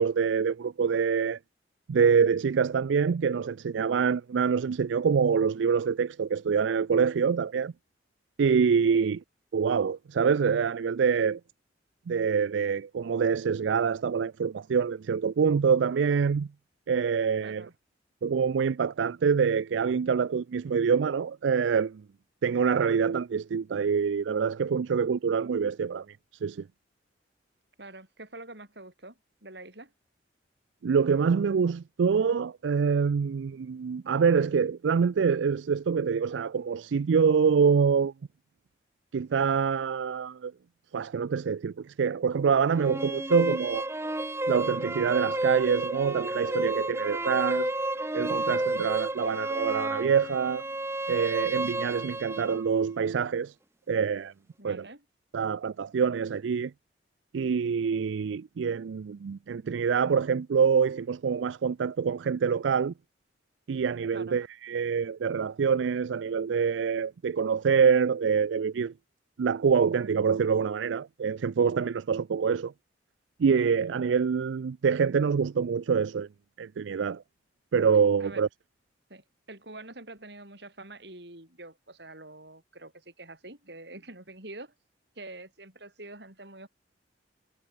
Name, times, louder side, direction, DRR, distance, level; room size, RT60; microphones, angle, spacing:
voice 1, 0.0-1.4 1.9-7.7 8.4-9.2 9.5-11.4 12.1-16.5 16.9-17.7 18.2-22.0 22.4-26.7 30.8-38.1 39.1-40.5 40.9-43.9 44.5-47.7 48.1-50.6 51.1-53.5 53.9-54.3 54.6-54.9 55.3-56.7 57.3-62.9 63.7-68.9 69.4-72.7 73.4-76.3 76.6-77.2 77.7-78.5, right 6 dB, 80° right, 0.4 m, -25 dB
voice 2, 17.4-17.7 27.8-29.9 54.6-55.0 64.1-64.4 78.2-78.4 79.1-84.7 85.2-86.7, right 2 dB, 65° right, 7.8 m, -46 dB
sound 1, 42.7-52.6, right 2 dB, 15° right, 1.0 m, -31 dB
head